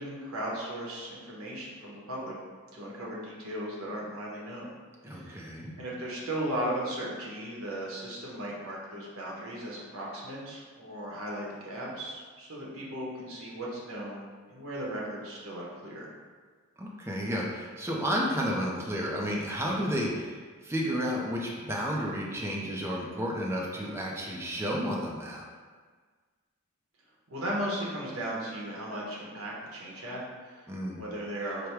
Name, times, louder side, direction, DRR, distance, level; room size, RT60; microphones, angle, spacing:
voice 1, 0.0-2.3 2.7-4.7 5.1-5.4 5.8-16.1 27.3-30.7 30.9-31.7, right 1 dB, 75° right, -4 dB, 1.1 m, -36 dB
voice 2, 5.0-5.8 16.8-25.4 30.7-31.0, equal, 10° right, -3 dB, 0.6 m, -32 dB
5.0 x 2.2 x 4.6 m, 1.5 s
head